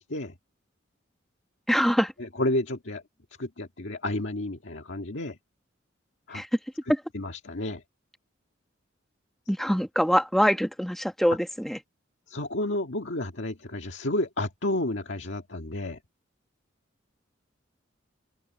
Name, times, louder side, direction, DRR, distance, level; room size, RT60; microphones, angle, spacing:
voice 1, 1.7-2.1 6.3-6.5 6.9-7.0 9.5-11.8, equal, ahead, 1.5 m, -24 dB
voice 2, 2.2-3.0 3.4-5.4 6.3-6.4 7.1-7.8 12.3-16.0, left 1 dB, 75° left, 1.8 m, -31 dB
open air
head